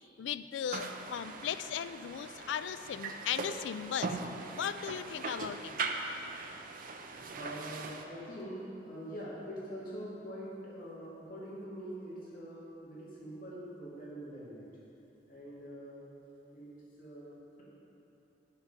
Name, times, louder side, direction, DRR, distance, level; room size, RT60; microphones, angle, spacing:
voice 1, 0.2-4.2 4.5-5.7, left 9 dB, 85° left, 13 dB, 0.3 m, -37 dB
sound 1, 0.7-8.0, right 3 dB, 50° right, 0.6 m, -40 dB
voice 2, 7.0-14.7 15.3-16.1 16.5-17.6, equal, 50° left, -7 dB, 2.2 m, -44 dB
11.5 x 5.8 x 5.6 m, 2.9 s
head